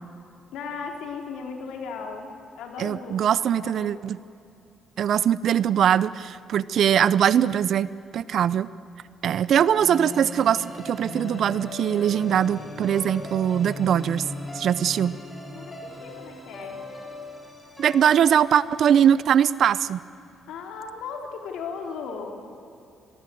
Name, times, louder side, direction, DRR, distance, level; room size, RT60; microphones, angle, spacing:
voice 1, 0.5-4.1 15.5-16.8 20.5-22.4, left 5 dB, 85° left, 2 dB, 3.7 m, -37 dB
voice 2, 2.8-4.2 5.0-8.7 9.2-14.2 14.5-15.1 17.8-20.0, right 9 dB, 65° right, 18 dB, 0.7 m, -21 dB
sound 1, 9.5-19.8, left 2 dB, 15° left, 7.1 m, -38 dB
25.0 x 19.5 x 7.8 m, 2.7 s
cardioid pair, 90°, 0 cm